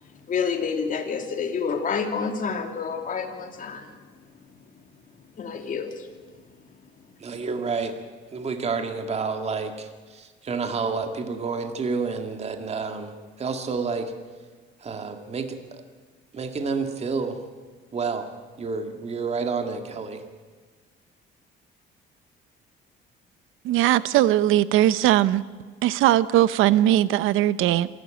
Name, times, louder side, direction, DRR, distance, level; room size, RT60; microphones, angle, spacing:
voice 1, 0.2-3.9 5.4-6.1, left 6 dB, 40° left, 5 dB, 2.8 m, -28 dB
voice 2, 7.2-8.0 8.3-13.1 13.4-14.1 14.8-15.8 16.3-17.4 17.9-18.3 18.6-20.2, right 4 dB, 30° right, 6 dB, 2.2 m, -29 dB
voice 3, 23.6-25.4 25.8-27.9, right 13 dB, 80° right, 17 dB, 0.8 m, -19 dB
26.5 x 12.5 x 9.0 m, 1.5 s
cardioid pair, 140°, 21 cm